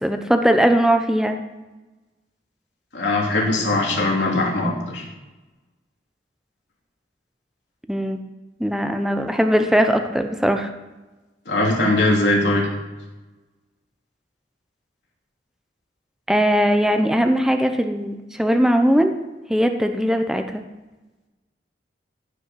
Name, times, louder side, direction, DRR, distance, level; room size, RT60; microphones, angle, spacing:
voice 1, 0.0-1.4 7.9-8.2 8.6-10.7 16.3-19.1 19.5-20.6, equal, 5° right, 6 dB, 0.8 m, -19 dB
voice 2, 2.9-5.0 11.5-12.7, left 2 dB, 85° left, -1 dB, 3.0 m, -20 dB
15.5 x 5.8 x 5.8 m, 1.1 s
head